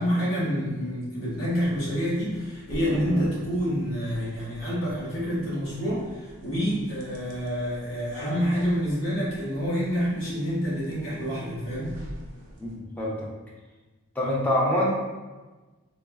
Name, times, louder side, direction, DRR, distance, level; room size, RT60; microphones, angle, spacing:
voice 1, 0.0-11.9, equal, 70° left, -8 dB, 1.0 m, -28 dB
sound 1, 1.3-12.8, right 2 dB, 90° right, 0.5 m, -41 dB
voice 2, 14.2-14.9, left 1 dB, 10° left, -4 dB, 0.3 m, -24 dB
3.3 x 2.0 x 2.2 m, 1.2 s
head